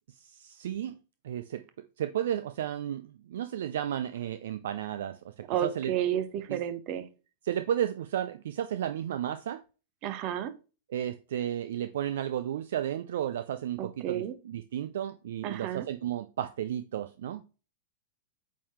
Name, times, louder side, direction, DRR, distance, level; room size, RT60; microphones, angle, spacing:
voice 1, 0.1-1.0 1.2-1.6 2.0-5.9 6.5-6.6 7.4-9.6 10.9-17.5, right 10 dB, 65° right, 10 dB, 0.4 m, -33 dB
voice 2, 5.5-7.0 10.0-10.5 13.8-14.3 15.4-15.9, right 10 dB, 45° right, 11 dB, 0.8 m, -31 dB
8.4 x 3.7 x 3.1 m, 0.33 s
figure-of-eight pair, 95°, 0 cm